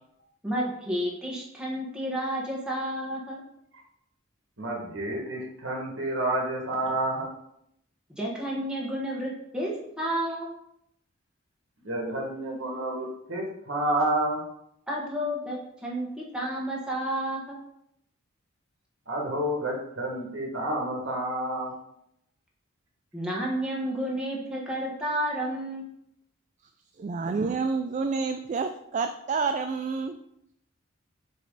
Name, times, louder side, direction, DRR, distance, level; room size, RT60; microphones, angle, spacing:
voice 1, 0.4-3.4 8.2-10.6 14.9-17.5 23.1-25.9, equal, 5° right, -4 dB, 1.4 m, -31 dB
voice 2, 4.6-7.3 11.8-14.4 19.1-21.7, right 1 dB, 65° right, -1 dB, 1.8 m, -29 dB
voice 3, 27.0-30.2, right 4 dB, 35° right, 7 dB, 0.3 m, -29 dB
7.7 x 3.2 x 3.9 m, 0.76 s
head